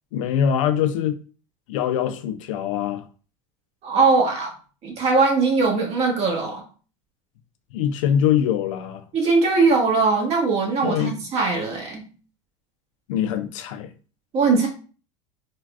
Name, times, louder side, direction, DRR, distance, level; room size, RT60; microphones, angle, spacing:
voice 1, 0.1-1.2 1.7-3.0 7.7-9.0 10.8-11.1 13.1-13.9, left 9 dB, 80° left, 0.4 m, -23 dB
voice 2, 3.8-4.5 4.8-6.6 9.1-12.1 14.3-14.7, right 4 dB, 40° right, 1.2 m, -20 dB
3.4 x 2.3 x 2.3 m
supercardioid pair, 110°, 16 cm